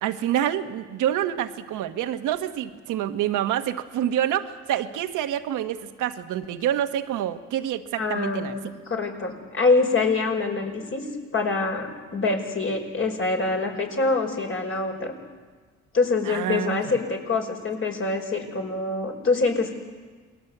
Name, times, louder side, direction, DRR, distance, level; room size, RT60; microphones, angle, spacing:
voice 1, 0.0-8.5 16.3-17.0, right 11 dB, 85° right, 8 dB, 1.4 m, -27 dB
voice 2, 8.0-8.6 8.9-11.1 11.3-15.1 15.9-19.7, left 3 dB, 45° left, 2 dB, 5.3 m, -25 dB
28.0 x 20.5 x 8.1 m, 1.5 s
cardioid pair, 90°, 30 cm